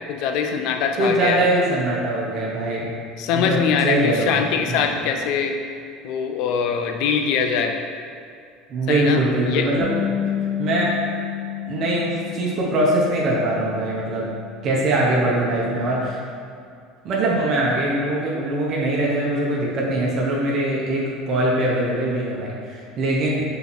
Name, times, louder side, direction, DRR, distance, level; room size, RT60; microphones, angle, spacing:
voice 1, 0.1-1.5 3.2-5.5 6.0-7.8 8.9-9.7, left 6 dB, 65° left, 4 dB, 0.6 m, -22 dB
voice 2, 1.0-2.9 3.3-4.9 8.7-9.9 10.6-10.9 11.7-14.3 14.6-16.2 17.0-23.4, right 1 dB, 50° right, -4 dB, 1.3 m, -22 dB
Bass guitar, 9.8-16.0, left 10 dB, 30° right, 0.9 m, -31 dB
5.6 x 4.5 x 4.2 m, 2.4 s
supercardioid pair, 105°, 0 cm